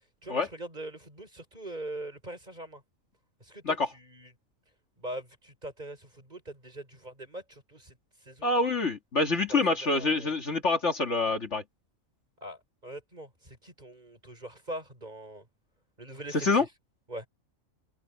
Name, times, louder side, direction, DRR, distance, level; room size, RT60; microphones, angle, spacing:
voice 1, 0.0-2.8 3.4-4.3 5.0-8.5 9.3-10.3 12.4-15.5 16.0-16.7 17.1-17.3, right 1 dB, 30° right, 6.6 m, -42 dB
voice 2, 8.4-11.6 16.4-16.6, left 3 dB, 55° left, 2.3 m, -26 dB
open air
omnidirectional pair, 1.4 m